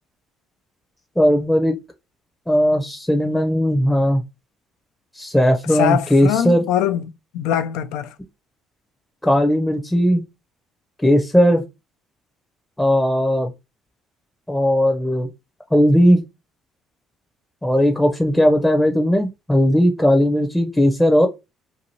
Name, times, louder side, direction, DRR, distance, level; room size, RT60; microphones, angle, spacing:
voice 1, 1.2-1.8 2.5-4.2 5.1-6.6 9.2-10.2 11.0-11.7 12.8-13.5 14.5-15.3 15.7-16.3 17.6-21.3, equal, 10° left, 0.6 m, -17 dB
voice 2, 5.7-7.0 7.3-8.1, left 10 dB, 85° left, 0.3 m, -22 dB
2.7 x 2.5 x 2.9 m
supercardioid pair, 70°, 0 cm